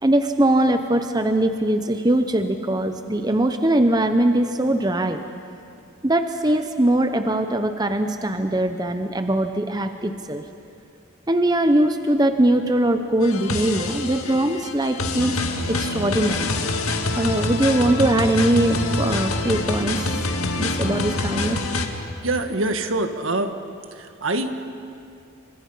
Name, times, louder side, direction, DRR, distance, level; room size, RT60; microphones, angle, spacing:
voice 1, 0.0-5.2 6.0-10.4 11.3-15.4 15.7-16.5 17.2-20.1 20.6-21.6, right 1 dB, 20° right, 7 dB, 0.8 m, -21 dB
sound 1, 13.2-21.9, left 2 dB, 90° left, 2.1 m, -26 dB
voice 2, 22.2-23.5 23.9-24.6, right 2 dB, 65° right, 7 dB, 1.6 m, -25 dB
29.5 x 25.5 x 5.7 m, 2.5 s
head